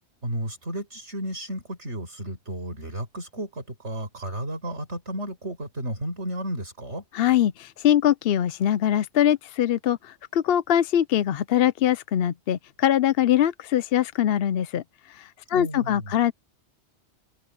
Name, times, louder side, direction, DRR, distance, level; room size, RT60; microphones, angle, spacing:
voice 1, 0.2-7.0 15.5-16.1, right 1 dB, 90° right, 6.5 m, -33 dB
voice 2, 7.1-14.8 15.1-16.3, left 11 dB, 65° left, 0.8 m, -22 dB
omnidirectional pair, 1.2 m